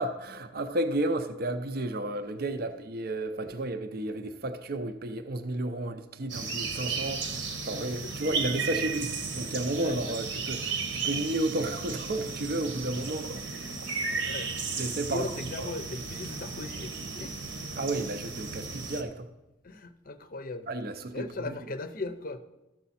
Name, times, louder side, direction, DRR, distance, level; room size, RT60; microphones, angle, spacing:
voice 1, 0.0-13.4 14.2-14.5 14.8-15.3 15.6-15.7 17.8-19.3 20.7-21.6, right 1 dB, 50° right, 0.6 m, -32 dB
sound 1, 6.3-19.0, right 4 dB, 70° right, 1.1 m, -34 dB
voice 2, 9.8-10.2 14.2-14.5 15.0-17.4 17.6-17.7 19.6-20.7 21.1-22.4, left 2 dB, 45° left, 0.6 m, -38 dB
13.0 x 7.0 x 4.2 m
head